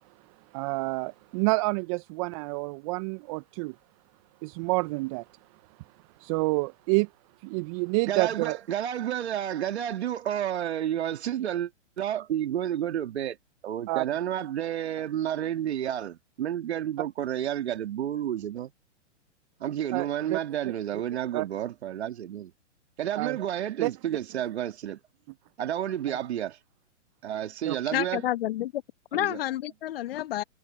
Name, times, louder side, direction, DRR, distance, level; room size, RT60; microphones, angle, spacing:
voice 1, 0.5-3.7 4.4-5.3 6.2-7.1 7.4-8.6 13.9-14.1 19.9-20.4 21.3-21.5 23.1-23.4 23.8-23.9 27.7-27.8, right 27 dB, 30° right, 0.7 m, -28 dB
voice 2, 8.1-11.7 12.0-13.4 13.6-18.7 19.6-22.5 23.0-25.0 25.6-26.6 27.2-28.2 29.1-29.4, right 11 dB, 60° right, 2.7 m, -30 dB
voice 3, 27.9-28.8 29.1-30.4, left 13 dB, 50° left, 1.2 m, -29 dB
hypercardioid pair, 125°, 37 cm